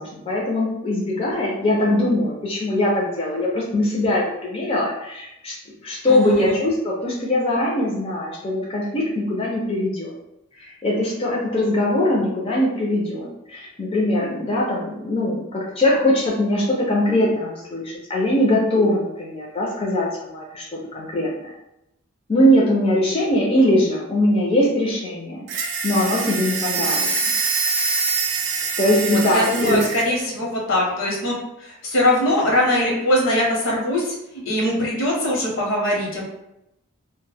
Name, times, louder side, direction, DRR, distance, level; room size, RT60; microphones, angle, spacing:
voice 1, 0.0-5.6 5.8-10.1 10.6-21.5 22.3-27.1 28.8-29.8, left 1 dB, 30° left, -4 dB, 0.4 m, -21 dB
voice 2, 6.1-6.6 28.9-36.2, left 1 dB, 70° left, -2 dB, 0.8 m, -22 dB
sound 1, 25.5-30.1, right 4 dB, 60° right, 0.4 m, -24 dB
2.1 x 2.0 x 3.3 m, 0.85 s
head